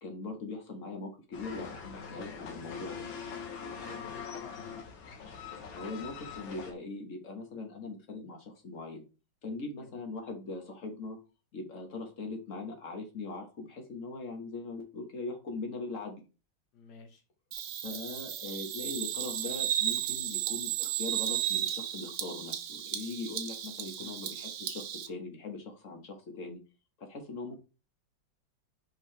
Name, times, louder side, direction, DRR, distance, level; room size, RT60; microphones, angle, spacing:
voice 1, 0.0-3.1 5.7-9.0 9.4-11.2 11.5-16.2 17.8-26.6 27.0-27.6, left 3 dB, 45° left, 3 dB, 1.5 m, -41 dB
sound 1, 1.3-6.7, left 6 dB, 85° left, 1.9 m, -43 dB
voice 2, 3.8-4.7 9.8-10.0 16.7-17.2 23.9-24.2, left 4 dB, 60° left, 4 dB, 1.7 m, -52 dB
Bird vocalization bird call bird song, 17.5-25.1, right 11 dB, 85° right, 0.6 m, -34 dB
6.0 x 4.7 x 3.3 m, 0.32 s
omnidirectional pair, 2.1 m